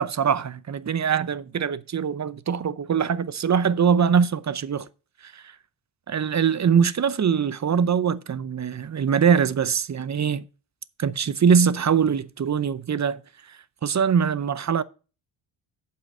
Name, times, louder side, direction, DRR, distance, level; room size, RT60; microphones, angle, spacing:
voice 1, 0.0-4.9 5.2-5.5 6.1-10.4 11.0-13.2 13.5-14.8, right 7 dB, 35° right, 0.7 m, -23 dB
7.7 x 5.7 x 6.1 m
cardioid pair, 75°, 50 cm